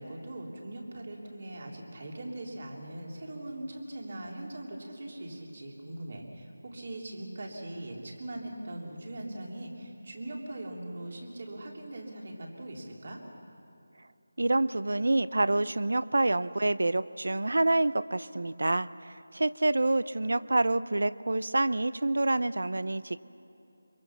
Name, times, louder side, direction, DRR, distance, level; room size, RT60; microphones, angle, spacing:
voice 1, 0.0-13.2, right 1 dB, 50° right, 0 dB, 3.4 m, -41 dB
voice 2, 14.4-18.9 19.3-23.2, right 2 dB, 75° right, 17 dB, 0.6 m, -27 dB
25.0 x 23.0 x 5.9 m, 2.7 s
figure-of-eight pair, 165°, 0 cm